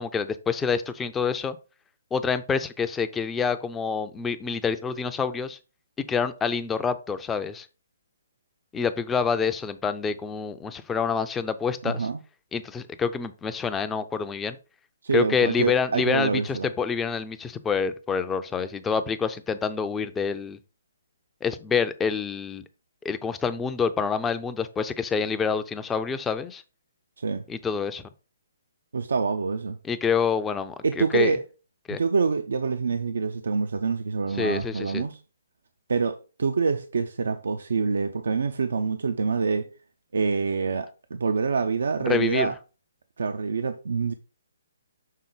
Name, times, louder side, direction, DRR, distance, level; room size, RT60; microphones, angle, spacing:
voice 1, 0.0-1.6 2.1-5.6 6.1-7.7 8.7-12.1 12.5-14.6 15.1-20.6 21.4-22.6 23.0-26.6 27.5-28.0 29.8-31.3 31.9-32.0 34.3-35.0 42.1-42.5, left 6 dB, 10° left, 0.5 m, -27 dB
voice 2, 11.8-12.2 15.0-16.7 27.2-27.4 28.9-29.8 30.8-31.4 31.9-35.2 35.9-39.7 40.1-42.5 43.2-44.1, right 4 dB, 60° right, 0.5 m, -26 dB
6.5 x 3.8 x 3.9 m
figure-of-eight pair, 135°, 0 cm